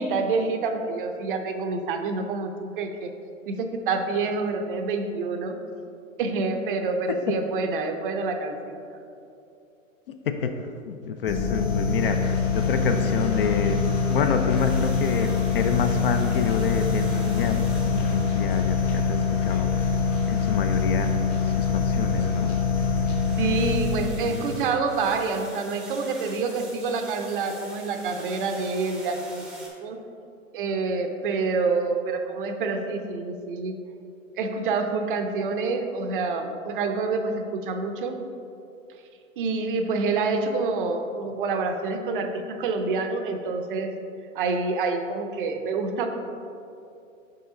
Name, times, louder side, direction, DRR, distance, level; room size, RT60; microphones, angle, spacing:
voice 1, 0.0-3.1 3.5-5.6 6.2-8.8 23.4-29.4 29.8-30.0 30.5-33.7 34.4-38.2 39.4-43.9 44.4-46.1, right 4 dB, 40° right, 6 dB, 0.5 m, -27 dB
voice 2, 10.9-19.7 20.3-21.2 21.6-22.5 24.2-24.6, left 5 dB, 45° left, 7 dB, 0.4 m, -28 dB
sound 1, 11.3-24.2, left 5 dB, 25° left, 0.9 m, -24 dB
sound 2, 14.5-29.7, right 1 dB, ahead, 0.6 m, -47 dB
5.6 x 5.3 x 3.7 m, 2.6 s
hypercardioid pair, 125°, 41 cm